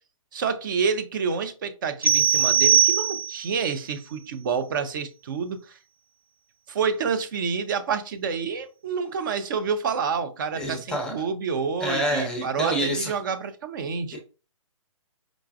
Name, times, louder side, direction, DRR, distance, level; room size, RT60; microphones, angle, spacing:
voice 1, 0.3-5.7 6.7-14.2, right 5 dB, 35° right, 0.5 m, -28 dB
sound 1, 2.0-3.5, right 8 dB, 90° right, 1.3 m, -20 dB
voice 2, 10.5-11.1 11.8-13.1 14.1-14.2, equal, 5° left, 0.6 m, -27 dB
4.8 x 2.3 x 2.4 m
figure-of-eight pair, 135°, 17 cm